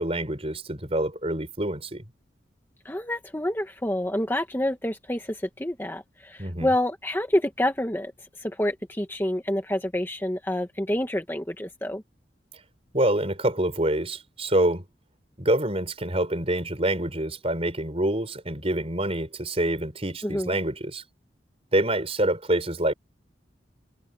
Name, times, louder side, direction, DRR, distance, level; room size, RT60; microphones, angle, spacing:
voice 1, 0.0-2.0 6.4-6.7 12.9-14.8 15.4-21.0 21.7-22.9, right 1 dB, 35° right, 5.5 m, -26 dB
voice 2, 2.8-8.1 8.4-12.0 20.2-20.5, left 1 dB, 10° left, 1.4 m, -28 dB
head